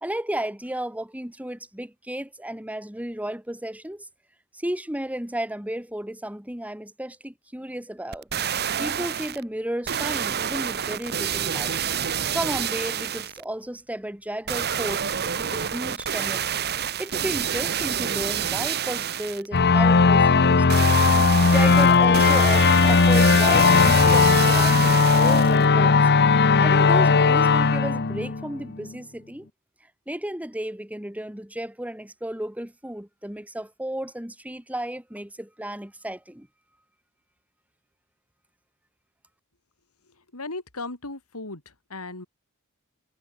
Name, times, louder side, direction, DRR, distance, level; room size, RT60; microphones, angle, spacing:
voice 1, 0.0-4.1 4.5-8.3 8.8-11.8 12.3-16.5 17.0-20.6 21.4-26.0 26.6-29.5 30.1-36.5, right 1 dB, 5° right, 2.6 m, -33 dB
sound 1, 8.1-9.4 9.9-13.4 14.5-19.5 20.7-25.7 26.1-26.2, right 8 dB, 50° right, 1.1 m, -28 dB
sound 2, 19.5-28.9, left 4 dB, 50° left, 0.9 m, -17 dB
voice 2, 40.3-41.6 41.9-42.3, left 2 dB, 80° left, 3.8 m, -35 dB
head